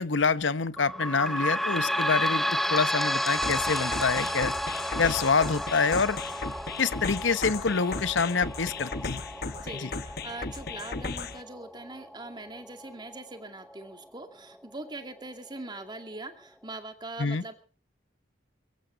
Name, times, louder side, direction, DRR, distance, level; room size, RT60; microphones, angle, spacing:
voice 1, 0.0-4.5 5.0-6.2 6.8-9.2 9.8-9.9 17.2-17.4, left 4 dB, 85° left, 1.0 m, -26 dB
sound 1, 0.8-13.9 14.5-14.6 14.9-15.0 15.8-15.9, equal, ahead, 0.8 m, -32 dB
sound 2, 3.4-11.4, left 4 dB, 55° left, 1.1 m, -36 dB
voice 2, 9.4-17.5, right 2 dB, 25° right, 2.3 m, -42 dB
sound 3, 12.0-12.3, left 1 dB, 80° right, 7.2 m, -56 dB
23.5 x 15.0 x 3.9 m
head